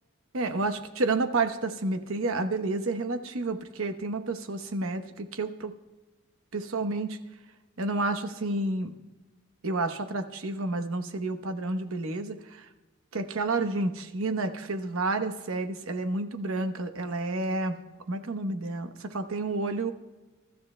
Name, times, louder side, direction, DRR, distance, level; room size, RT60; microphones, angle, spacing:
voice 1, 0.3-5.7 6.5-7.2 7.8-8.9 9.6-12.7 13.1-17.8 18.1-19.9, right 2 dB, 70° right, 8 dB, 1.0 m, -30 dB
27.5 x 13.0 x 2.2 m, 1.2 s
head